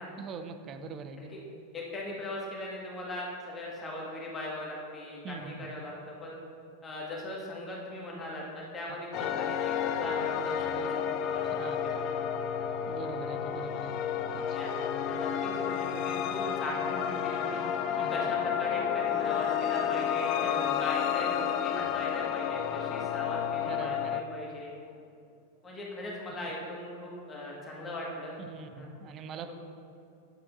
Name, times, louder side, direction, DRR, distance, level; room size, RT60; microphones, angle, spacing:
voice 1, 0.2-1.3 5.2-5.7 9.2-9.3 11.6-11.8 12.9-13.9 14.3-14.6 17.9-18.3 20.4-20.8 23.7-24.2 28.4-29.5, right 5 dB, 30° right, 9 dB, 0.5 m, -42 dB
voice 2, 1.7-6.4 6.8-12.5 14.5-17.6 18.1-20.5 20.8-24.7 25.6-28.4 28.8-28.9 29.5-29.6, left 1 dB, 20° left, -3 dB, 1.9 m, -39 dB
sound 1, 9.1-24.2, left 9 dB, 40° left, 0.4 m, -31 dB
10.5 x 7.6 x 2.7 m, 2.7 s
figure-of-eight pair, 90°, 0 cm